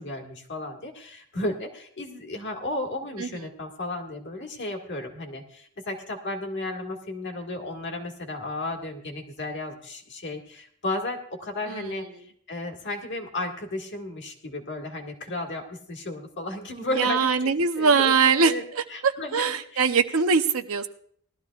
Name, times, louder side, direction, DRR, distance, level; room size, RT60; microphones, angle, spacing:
voice 1, 0.0-18.6 18.9-19.8, left 2 dB, 55° left, 3 dB, 1.7 m, -34 dB
voice 2, 3.2-3.5 11.7-12.0 16.9-20.9, right 5 dB, 75° right, 9 dB, 0.7 m, -23 dB
19.0 x 12.5 x 2.4 m, 0.63 s
head